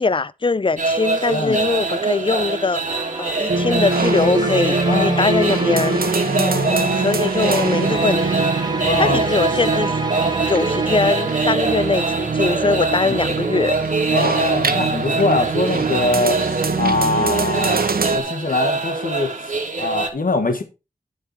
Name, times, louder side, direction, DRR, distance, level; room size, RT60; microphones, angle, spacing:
voice 1, 0.0-6.0 6.7-8.4 9.0-9.9 10.5-13.8 15.2-15.3, left 4 dB, 35° left, 0.5 m, -22 dB
sound 1, 0.8-20.1, right 3 dB, 55° right, 2.1 m, -25 dB
voice 2, 1.3-1.6 4.9-5.4 6.3-7.0 8.8-9.2 13.0-13.2 14.1-16.4 16.7-17.8 18.1-20.6, left 3 dB, 70° left, 1.5 m, -23 dB
sound 2, 2.9-12.6, right 1 dB, 30° right, 1.1 m, -30 dB
sound 3, 3.5-18.2, right 4 dB, 85° right, 1.2 m, -23 dB
10.0 x 7.3 x 4.2 m
wide cardioid pair, 75°, 15 cm